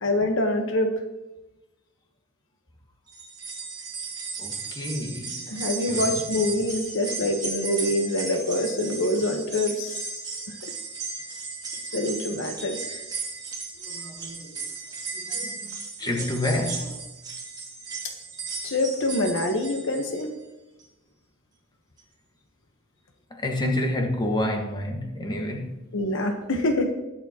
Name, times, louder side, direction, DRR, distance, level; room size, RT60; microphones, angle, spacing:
voice 1, 0.0-0.9 5.5-10.1 11.9-13.0 18.6-20.3 25.9-26.9, left 1 dB, 65° left, 1.2 m, -25 dB
sound 1, 3.1-20.4 20.8-20.9 22.0-22.1, right 4 dB, 20° right, 2.3 m, -35 dB
voice 2, 4.4-6.2 13.8-14.6 15.1-17.0 23.3-25.8, left 1 dB, 20° left, 1.6 m, -29 dB
20.0 x 7.2 x 2.9 m
head